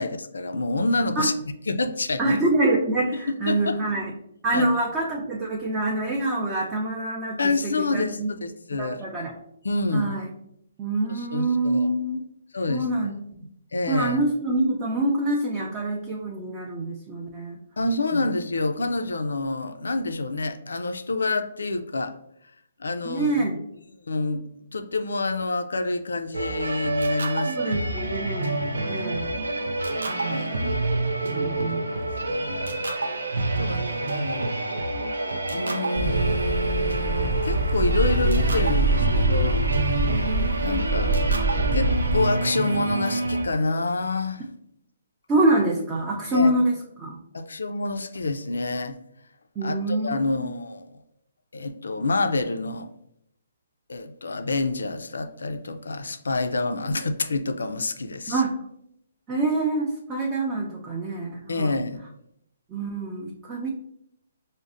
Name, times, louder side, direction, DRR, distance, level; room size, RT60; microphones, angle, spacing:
voice 1, 0.0-1.3 1.7-2.4 3.1-3.8 4.5-4.7 7.4-9.0 9.6-10.1 11.1-11.9 12.5-12.9 13.7-14.2 17.8-22.2 22.8-23.5 24.0-24.4 24.7-28.1 28.6-29.1 29.5-29.7 30.3-30.9 31.9-33.0 33.3-34.7 35.5-39.9 40.6-41.2 41.7-44.5 46.3-46.5 47.3-49.0 49.6-50.9 51.5-52.9 53.9-58.4 61.5-62.0, left 2 dB, 85° left, 8 dB, 0.3 m, -28 dB
voice 2, 2.2-4.1 4.4-8.4 8.7-9.3 9.9-10.3 10.8-12.2 12.7-13.5 13.9-17.6 18.1-18.3 23.0-23.6 27.5-28.6 28.9-29.4 30.0-30.6 31.3-31.9 33.5-33.9 45.3-47.2 49.6-50.7 58.3-58.5 59.3-61.8 62.7-63.7, right 2 dB, 20° right, -3 dB, 0.5 m, -26 dB
sound 1, 26.3-43.5, right 2 dB, 90° right, 0.4 m, -28 dB
Ocean, 35.9-42.2, right 2 dB, 65° right, 0.9 m, -24 dB
5.0 x 2.0 x 2.5 m, 0.75 s
hypercardioid pair, 145°, 0 cm